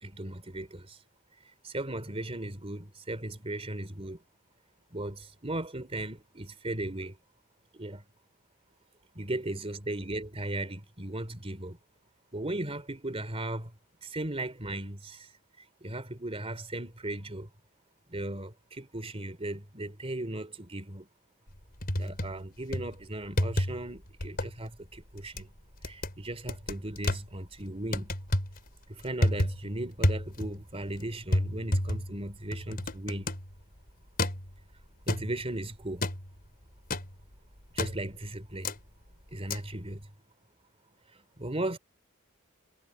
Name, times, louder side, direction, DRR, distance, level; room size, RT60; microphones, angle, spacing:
voice 1, 0.0-1.0 1.6-4.2 4.9-7.1 7.7-8.0 9.1-11.8 12.3-13.7 14.0-15.3 15.8-17.5 18.1-21.1 21.9-25.5 25.8-28.1 28.9-33.3 35.1-36.1 37.7-38.7 39.3-40.1 41.4-41.8, right 1 dB, 25° right, 3.4 m, -37 dB
sound 1, 21.5-22.4 22.7-23.0 23.4-23.9 24.2-24.5 25.0-25.4 25.8-26.2 26.5-27.2 27.9-28.6 29.0-29.7 30.0-30.6 30.9-31.0 31.3-33.5 34.2-34.5 35.1-35.5 36.0-36.3 36.9-37.1 37.8-38.1 38.6-38.8 39.5-39.6, left 1 dB, 45° left, 4.9 m, -30 dB
head